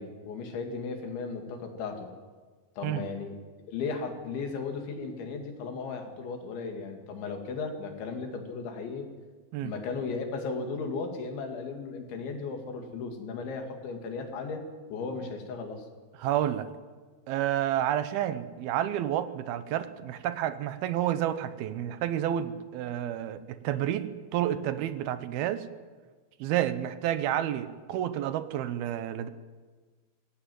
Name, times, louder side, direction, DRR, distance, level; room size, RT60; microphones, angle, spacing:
voice 1, 0.0-2.1 2.8-3.4 3.7-9.1 9.6-14.6 14.9-15.8, left 4 dB, 80° left, 4 dB, 4.8 m, -36 dB
voice 2, 16.2-16.7 17.3-25.7 26.4-29.3, right 11 dB, 75° right, 12 dB, 2.5 m, -30 dB
23.5 x 16.0 x 9.4 m, 1.4 s
omnidirectional pair, 5.2 m